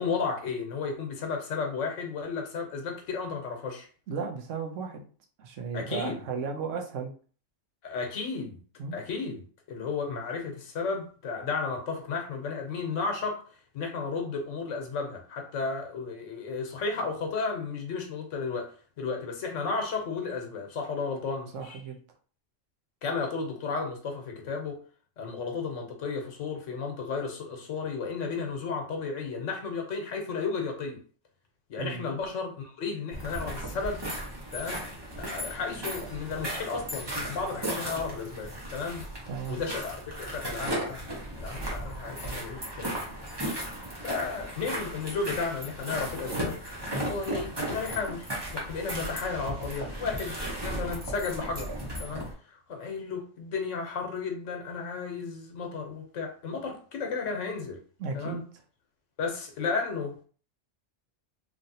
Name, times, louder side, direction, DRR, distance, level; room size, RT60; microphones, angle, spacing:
voice 1, 0.0-3.9 5.7-6.2 7.8-8.6 8.9-9.4 9.7-13.4 13.7-21.8 23.0-24.8 25.2-31.0 31.7-34.1 34.5-34.9 35.2-39.0 39.5-41.1 41.4-43.0 43.3-43.5 44.0-46.6 46.9-48.3 48.5-50.4 50.6-51.7 52.0-57.8 58.1-58.5 59.2-60.2, left 4 dB, 80° left, 1.1 m, -33 dB
voice 2, 4.1-5.1 5.4-7.1 8.8-9.0 21.5-22.0 31.8-32.0 39.3-39.6 58.0-58.4, right 5 dB, 85° right, 1.0 m, -34 dB
sound 1, 33.1-52.3, right 1 dB, 25° right, 0.8 m, -36 dB
3.1 x 2.5 x 2.7 m
omnidirectional pair, 1.3 m